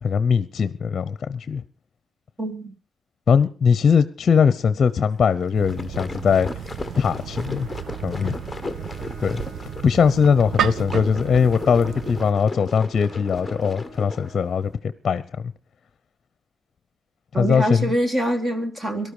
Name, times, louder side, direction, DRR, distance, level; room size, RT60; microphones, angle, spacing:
voice 1, 0.0-1.6 3.3-6.5 7.0-7.7 8.0-8.4 9.2-9.4 9.8-15.2 17.4-17.9, left 6 dB, 45° left, 14 dB, 0.8 m, -20 dB
voice 2, 2.4-2.7 17.3-19.1, equal, 25° right, 8 dB, 1.6 m, -24 dB
sound 1, 5.4-14.3, left 3 dB, 10° left, 1.1 m, -36 dB
sound 2, 5.5-12.3, right 9 dB, 65° right, 0.6 m, -32 dB
Bowed string instrument, 6.9-15.1, equal, 40° right, 7.8 m, -45 dB
18.0 x 12.5 x 5.0 m, 0.38 s
cardioid pair, 110°, 0 cm